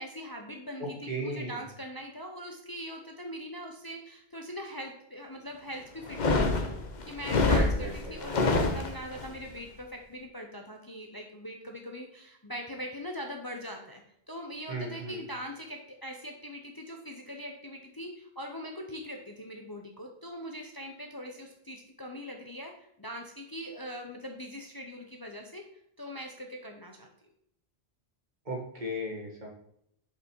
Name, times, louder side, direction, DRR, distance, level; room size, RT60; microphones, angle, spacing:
voice 1, 0.0-6.7 7.0-14.0 14.3-25.6 26.0-27.1, equal, 25° left, 2 dB, 0.8 m, -42 dB
voice 2, 0.8-1.6 7.4-8.2 14.7-15.2 28.5-29.5, equal, 45° right, -1 dB, 1.9 m, -35 dB
sound 1, 6.0-9.3, left 3 dB, 45° left, 1.0 m, -26 dB
7.1 x 5.6 x 4.5 m, 0.72 s
omnidirectional pair, 1.1 m